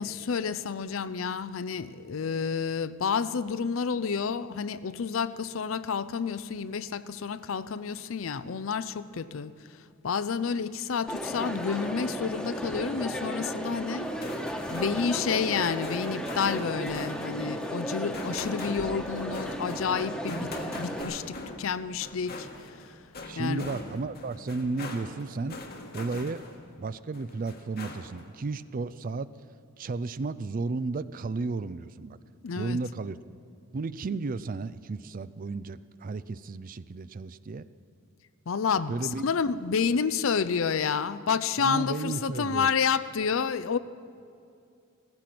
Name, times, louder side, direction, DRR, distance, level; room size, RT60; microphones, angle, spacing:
voice 1, 0.0-9.5 10.0-14.1 14.7-20.5 20.8-22.5 23.4-23.6 32.4-32.8 38.5-38.9 39.2-43.8, left 6 dB, 70° left, 15 dB, 0.5 m, -29 dB
Crowd, 11.1-21.0, equal, 5° left, 1.2 m, -34 dB
sound 1, 14.0-26.7 27.1-28.3, left 2 dB, 50° left, 1.4 m, -42 dB
voice 2, 18.3-18.7 23.3-25.6 25.9-26.4 26.8-29.3 29.8-32.2 32.6-33.2 33.7-37.7 38.9-39.2 41.6-42.7, right 3 dB, 40° right, 15 dB, 0.4 m, -33 dB
15.5 x 15.0 x 6.0 m, 2.5 s
head